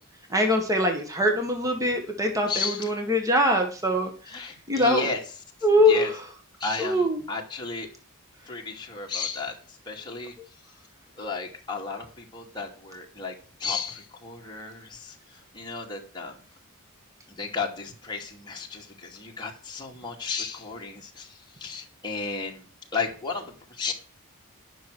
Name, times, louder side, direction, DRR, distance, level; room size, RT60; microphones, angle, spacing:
voice 1, 0.3-4.4 4.7-5.1 5.6-6.1 6.8-7.2, left 1 dB, 15° right, 3 dB, 1.7 m, -23 dB
voice 2, 2.5-2.9 4.3-5.2 5.9-6.1 6.6-7.9 8.5-9.6 9.9-10.3 11.2-13.3 13.6-16.4 17.3-22.7 22.9-23.9, left 4 dB, 20° left, -1 dB, 2.4 m, -33 dB
10.5 x 6.3 x 6.3 m, 0.39 s
head